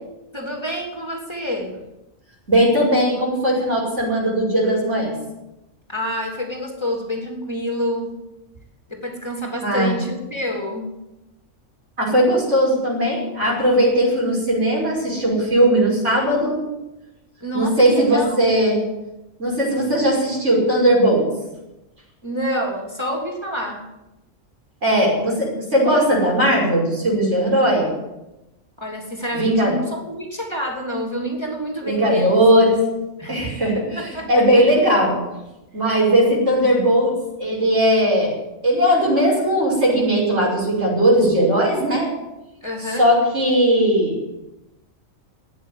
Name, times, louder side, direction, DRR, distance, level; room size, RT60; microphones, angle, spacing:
voice 1, 0.3-1.8 5.9-8.2 8.9-11.0 17.4-18.6 22.2-23.9 28.8-32.4 33.2-33.6 34.0-34.6 42.6-43.1, equal, 20° left, 1 dB, 3.0 m, -28 dB
voice 2, 2.5-5.1 9.6-10.0 12.0-16.6 17.5-18.8 19.4-21.3 24.8-27.9 29.3-29.8 31.8-32.8 33.3-35.2 35.7-37.1 37.4-38.3 38.6-42.1 43.0-44.3, right 1 dB, 65° right, -4 dB, 6.2 m, -18 dB
14.0 x 9.6 x 9.5 m, 0.94 s
omnidirectional pair, 1.3 m